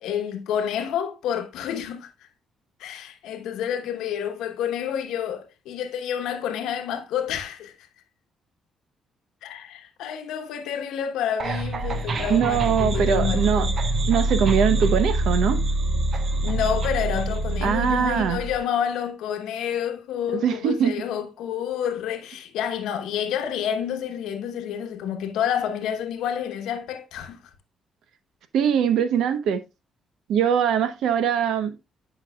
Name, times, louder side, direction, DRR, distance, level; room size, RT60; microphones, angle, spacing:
voice 1, 0.0-2.1 2.8-7.7 9.4-13.8 16.3-27.4, left 9 dB, 90° left, 1.0 m, -29 dB
sound 1, 11.4-18.6, right 1 dB, 50° right, 0.9 m, -25 dB
voice 2, 12.3-13.7 14.1-15.6 17.6-18.4 20.4-20.9 28.5-29.6 30.3-31.7, right 8 dB, 80° right, 0.8 m, -22 dB
10.0 x 5.3 x 2.3 m
cardioid pair, 90°, 0 cm